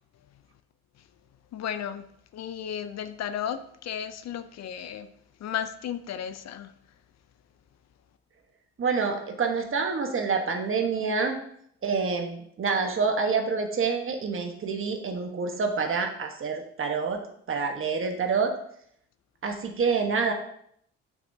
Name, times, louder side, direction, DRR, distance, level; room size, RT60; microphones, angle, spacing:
voice 1, 1.5-2.1 2.3-5.1 5.4-6.7, left 9 dB, 60° left, 0.5 m, -34 dB
voice 2, 8.8-11.4 11.8-17.2 17.5-18.5 19.4-20.3, right 5 dB, 45° right, 1.2 m, -27 dB
7.6 x 6.0 x 2.7 m
cardioid pair, 90°, 30 cm